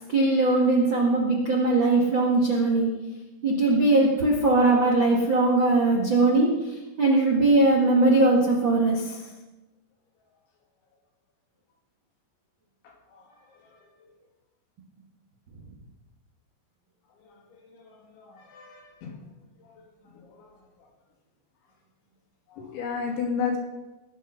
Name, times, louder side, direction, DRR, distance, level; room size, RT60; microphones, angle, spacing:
voice 1, 0.1-3.0 3.4-9.2, right 2 dB, 55° right, -2 dB, 1.3 m, -21 dB
voice 2, 12.8-13.2 17.6-19.1 19.6-19.8 20.1-20.5 22.5-23.6, left 6 dB, 80° left, 0 dB, 4.9 m, -33 dB
20.0 x 8.5 x 5.7 m, 1.1 s
omnidirectional pair, 5.2 m